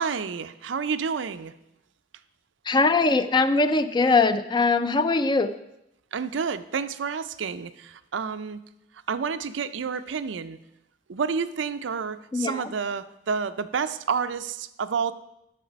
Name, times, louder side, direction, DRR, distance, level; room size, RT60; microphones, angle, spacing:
voice 1, 0.0-1.6 6.1-8.6 9.1-10.6 11.1-15.1, right 6 dB, 90° right, 12 dB, 0.5 m, -29 dB
voice 2, 2.7-5.5 12.3-12.7, left 3 dB, 25° left, 12 dB, 0.4 m, -21 dB
10.0 x 6.8 x 5.2 m, 0.86 s
head